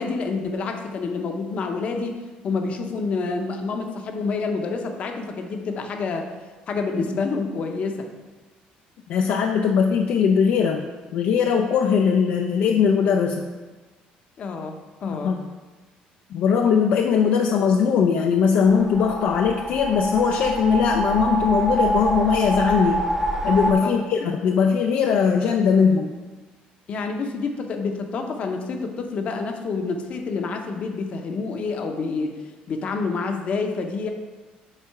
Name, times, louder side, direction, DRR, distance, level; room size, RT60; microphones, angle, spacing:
voice 1, 0.0-2.2 2.4-6.3 6.7-8.1 14.4-15.3 23.8-24.0 26.9-32.4 32.7-34.1, left 4 dB, 45° left, 5 dB, 0.8 m, -28 dB
voice 2, 9.1-10.9 11.1-13.5 15.1-15.5 16.3-23.1 23.4-26.1, left 6 dB, 65° left, 3 dB, 0.4 m, -20 dB
sound 1, 18.6-23.7, right 1 dB, 10° right, 0.7 m, -25 dB
7.5 x 3.6 x 4.7 m, 1.3 s
cardioid pair, 130°, 3 cm